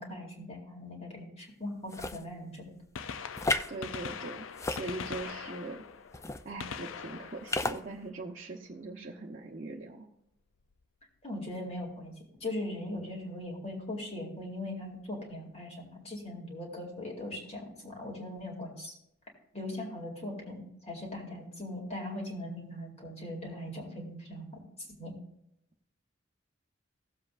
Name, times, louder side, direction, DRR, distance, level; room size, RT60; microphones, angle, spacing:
voice 1, 0.0-2.7 11.2-12.1 12.4-19.0 19.5-24.5 24.8-25.1, left 1 dB, 30° left, 0 dB, 2.5 m, -40 dB
sound 1, 1.9-2.2 3.4-3.7 4.5-5.3 6.1-6.4 7.5-7.8, left 2 dB, 15° left, 0.4 m, -32 dB
Gunshot gunfire, 2.3-2.4 2.8-8.7 10.6-10.7 11.8-11.9 13.4-13.5 14.9-15.0 15.2-15.3, left 6 dB, 85° left, 0.5 m, -42 dB
voice 2, 3.7-5.8 6.4-10.1, right 3 dB, 40° right, -3 dB, 0.8 m, -41 dB
16.5 x 7.6 x 2.5 m, 0.76 s
head